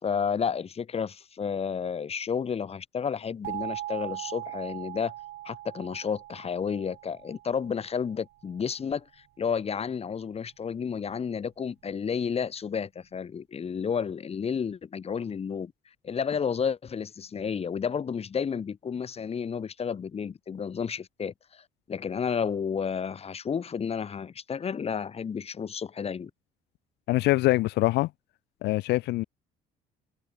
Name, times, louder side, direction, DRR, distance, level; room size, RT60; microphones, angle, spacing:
voice 1, 0.0-5.1 5.4-9.1 9.4-15.7 16.0-26.3, left 6 dB, 35° left, 3.9 m, -31 dB
sound 1, 3.4-8.2, right 15 dB, 75° right, 5.3 m, -40 dB
voice 2, 27.1-28.1 28.6-29.2, left 18 dB, 85° left, 1.6 m, -24 dB
cardioid pair, 110°, 17 cm